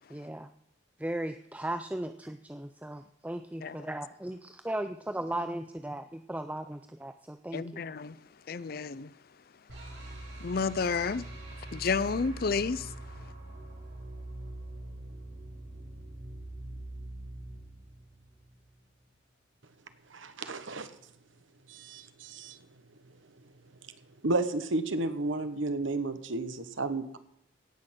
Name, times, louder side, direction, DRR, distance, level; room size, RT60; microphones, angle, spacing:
voice 1, 0.1-0.5 1.0-7.8, right 1 dB, 5° right, 0.4 m, -37 dB
voice 2, 7.5-8.2 8.5-9.1 10.4-11.3 11.6-12.9, left 5 dB, 50° left, 0.5 m, -31 dB
sound 1, 9.7-18.8, right 1 dB, 60° right, 5.5 m, -43 dB
voice 3, 20.1-20.9 21.7-22.6 24.2-27.2, right 2 dB, 85° right, 1.3 m, -32 dB
17.5 x 6.5 x 7.6 m
head